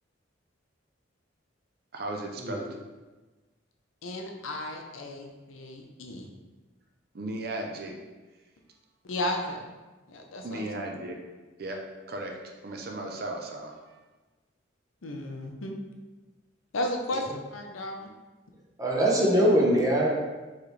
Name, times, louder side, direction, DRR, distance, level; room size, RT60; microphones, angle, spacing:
voice 1, 1.9-2.7 7.1-7.9 10.4-11.2 11.6-11.8 12.1-13.9, right 1 dB, 50° right, 1 dB, 0.6 m, -36 dB
voice 2, 4.0-6.3 9.0-9.7 10.1-10.7 15.0-15.8 16.7-18.1, left 1 dB, 85° left, 3 dB, 0.6 m, -34 dB
voice 3, 18.8-20.2, equal, 15° right, -3 dB, 0.8 m, -23 dB
4.8 x 3.2 x 3.2 m, 1.2 s
head